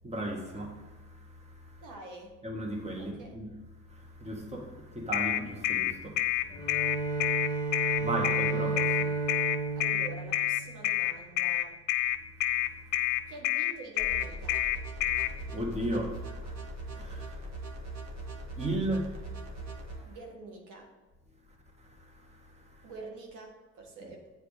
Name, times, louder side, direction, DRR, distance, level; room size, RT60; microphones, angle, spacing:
voice 1, 0.0-1.8 2.4-3.5 3.8-9.8 12.4-13.3 15.1-20.2 21.8-22.9, right 1 dB, 20° right, 1.8 m, -38 dB
voice 2, 1.8-2.4 3.0-3.4 9.8-11.8 13.3-14.6 20.0-20.9 22.8-24.3, right 3 dB, 90° right, 1.6 m, -46 dB
sound 1, 5.1-15.3, left 13 dB, 65° left, 0.6 m, -28 dB
Bowed string instrument, 6.5-11.1, right 4 dB, 15° left, 1.7 m, -32 dB
sound 2, 14.0-20.0, right 2 dB, 60° right, 1.8 m, -40 dB
7.8 x 4.5 x 6.6 m
cardioid pair, 90°, 30 cm